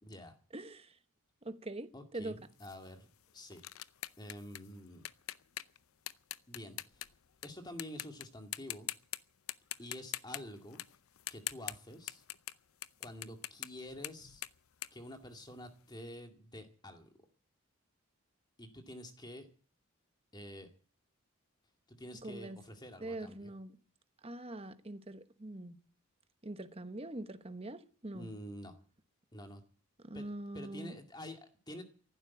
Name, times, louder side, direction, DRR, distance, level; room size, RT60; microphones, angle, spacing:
voice 1, 0.0-0.4 1.9-3.1 3.3-3.6 4.2-5.0 6.5-7.1 7.4-8.9 9.8-10.8 11.3-12.2 13.0-14.4 14.9-17.1 18.6-19.5 20.3-20.7 21.9-23.5 28.1-28.7 29.3-29.6 30.1-31.8, left 1 dB, 20° left, 2.2 m, -48 dB
voice 2, 0.5-0.9 1.4-2.4 22.2-22.6 23.0-23.7 24.2-25.8 26.4-28.3 30.0-31.0, right 1 dB, 30° right, 1.1 m, -43 dB
sound 1, 2.6-7.5 7.8-8.2 8.5-9.2 9.5-15.8, left 14 dB, 80° left, 0.7 m, -43 dB
15.0 x 12.0 x 8.3 m
head